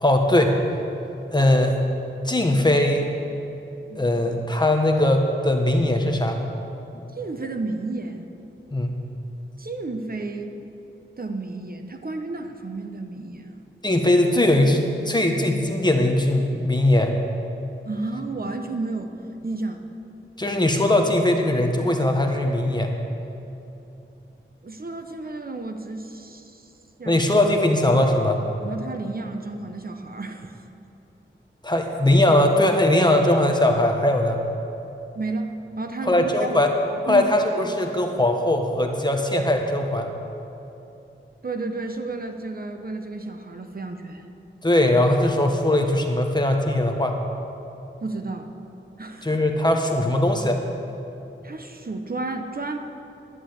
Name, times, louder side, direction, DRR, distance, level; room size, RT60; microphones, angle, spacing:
voice 1, 0.0-0.6 1.3-1.8 2.2-3.1 4.0-6.4 8.7-9.0 13.8-17.2 20.4-22.9 27.0-28.4 31.6-34.4 36.0-36.7 37.0-40.1 44.6-47.2 49.2-50.6, left 1 dB, 20° left, 3 dB, 1.4 m, -20 dB
voice 2, 7.1-8.3 9.6-10.5 11.2-13.6 17.8-19.2 19.4-19.8 24.6-26.7 27.0-27.2 28.6-30.5 35.1-36.6 37.1-37.8 41.4-44.3 48.0-48.5 49.0-49.4 51.4-52.8, right 3 dB, 45° right, 5 dB, 0.9 m, -32 dB
11.0 x 10.5 x 8.0 m, 2.9 s
wide cardioid pair, 90°, 21 cm